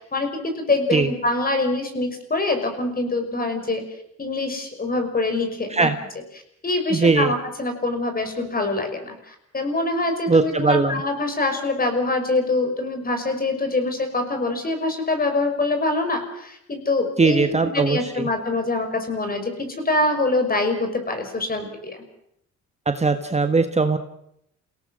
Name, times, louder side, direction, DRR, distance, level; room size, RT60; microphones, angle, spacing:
voice 1, 0.0-3.8 4.2-5.9 6.6-22.0, left 2 dB, 30° left, 6 dB, 5.7 m, -24 dB
voice 2, 6.9-7.3 10.3-11.0 17.2-18.3 22.9-24.0, right 4 dB, 20° right, 7 dB, 1.4 m, -20 dB
29.0 x 18.0 x 6.5 m, 0.74 s
cardioid pair, 90°, 30 cm